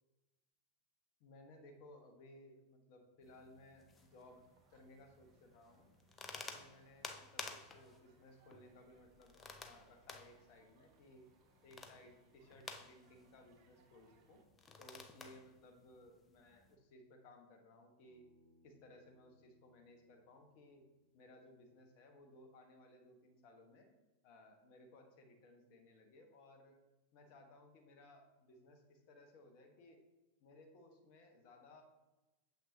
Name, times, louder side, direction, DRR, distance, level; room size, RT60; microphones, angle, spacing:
voice 1, 1.2-4.4 4.7-5.9 6.3-11.3 11.6-14.4 14.8-18.3 18.6-20.9 21.1-23.9 24.2-26.8 27.1-30.0 30.4-31.8, left 1 dB, 45° left, 4 dB, 1.2 m, -61 dB
sound 1, 3.2-16.8, left 4 dB, 20° left, 0.6 m, -55 dB
sound 2, 4.0-14.5, right 5 dB, 45° right, 0.8 m, -74 dB
Bass guitar, 18.0-22.3, left 1 dB, 70° right, 2.1 m, -73 dB
7.1 x 5.9 x 2.7 m, 1.1 s
figure-of-eight pair, 90°, 0 cm